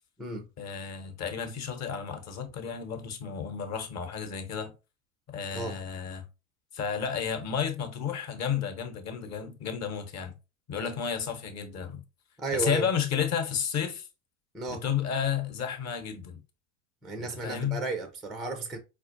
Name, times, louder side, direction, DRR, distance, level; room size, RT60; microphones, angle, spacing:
voice 1, 0.6-4.7 5.3-6.2 6.7-10.3 10.7-12.0 12.5-14.1 14.7-16.4 17.2-17.8, left 7 dB, 40° left, 0.9 m, -32 dB
voice 2, 12.4-12.9 14.5-14.8 17.0-18.8, right 3 dB, ahead, 0.3 m, -33 dB
4.3 x 2.4 x 2.5 m
hypercardioid pair, 80°, 43 cm